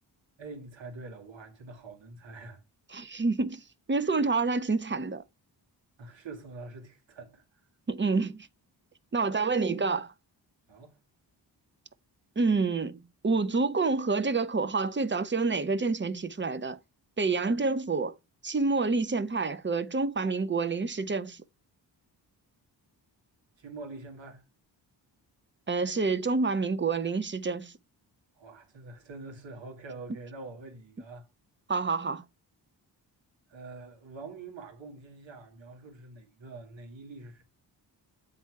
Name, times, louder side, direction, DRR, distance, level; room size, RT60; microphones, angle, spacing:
voice 1, 0.4-2.6 6.0-7.6 10.7-11.0 23.6-24.4 28.4-31.3 33.5-37.4, right 3 dB, 75° right, 1.9 m, -45 dB
voice 2, 2.9-3.6 3.9-5.2 7.9-8.5 9.1-10.1 12.4-16.8 17.2-18.2 18.4-21.4 25.7-27.7 31.7-32.2, right 4 dB, 25° right, 0.7 m, -28 dB
8.0 x 3.4 x 4.7 m
cardioid pair, 55°, 45 cm